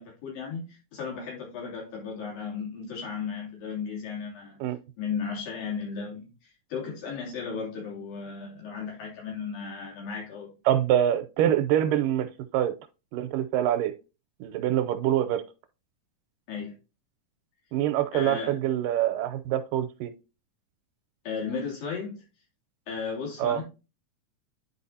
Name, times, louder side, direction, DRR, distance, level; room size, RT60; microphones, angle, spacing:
voice 1, 0.0-4.6 5.0-10.5 16.5-16.7 18.1-18.6 21.2-22.2 22.9-23.6, left 5 dB, 90° left, 4.6 m, -35 dB
voice 2, 10.7-12.7 13.1-13.9 14.4-15.4 17.7-20.1 23.4-23.6, right 11 dB, 85° right, 2.3 m, -25 dB
10.5 x 4.6 x 2.7 m
omnidirectional pair, 3.9 m